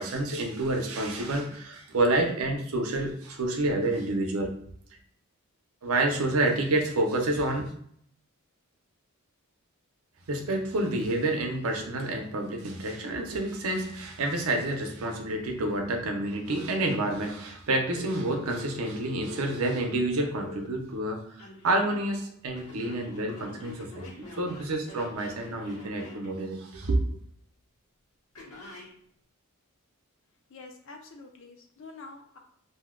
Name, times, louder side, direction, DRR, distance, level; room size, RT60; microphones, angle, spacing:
voice 1, 0.0-4.6 5.8-7.7 10.3-27.0, right 2 dB, 75° right, 3 dB, 0.6 m, -29 dB
Telephone, 17.9-20.7 21.4-22.0 22.5-26.3 28.4-28.9, left 3 dB, 80° left, 1.2 m, -44 dB
voice 2, 30.5-32.4, left 3 dB, 55° left, 3 dB, 0.5 m, -47 dB
2.6 x 2.1 x 3.6 m, 0.66 s
head